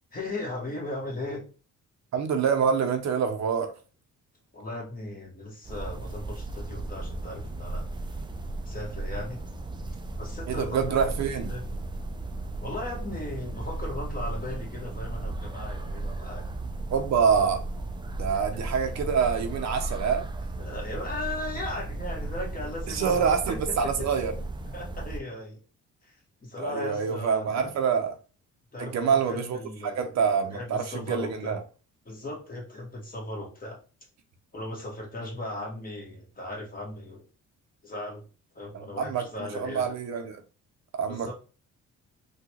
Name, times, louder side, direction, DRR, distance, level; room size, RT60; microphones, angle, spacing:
voice 1, 0.1-1.4 4.5-7.9 8.6-9.4 10.1-11.1 11.5-11.7 12.6-16.5 18.3-18.6 20.6-23.6 24.0-24.1 24.7-25.6 26.0-27.7 28.7-30.1 30.5-31.6 32.0-33.8 34.5-37.2 37.8-38.2 38.5-40.0 41.1-41.3, left 1 dB, 30° left, 1.5 m, -37 dB
voice 2, 2.1-3.7 10.5-11.5 16.9-17.6 18.2-20.2 22.9-24.3 26.6-28.1 28.8-29.6 29.8-31.6 38.7-39.2 39.5-40.4 40.9-41.3, right 6 dB, 65° right, 0.6 m, -26 dB
sound 1, 5.6-25.2, right 2 dB, 15° right, 0.4 m, -35 dB
3.7 x 2.3 x 2.9 m
cardioid pair, 90°, 30 cm